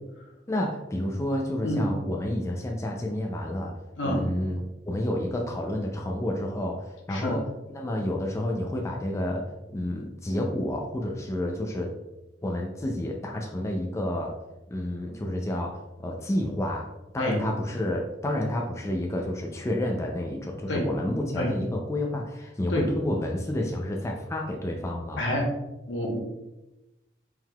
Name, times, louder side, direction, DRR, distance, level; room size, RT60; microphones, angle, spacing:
voice 1, 0.5-7.4 7.7-11.9 12.4-14.3 14.7-16.9 17.1-25.2, left 1 dB, 15° left, 1 dB, 0.4 m, -30 dB
voice 2, 25.2-25.5 25.9-26.2, left 1 dB, 70° left, -1 dB, 1.0 m, -27 dB
4.5 x 3.7 x 2.2 m, 0.99 s
head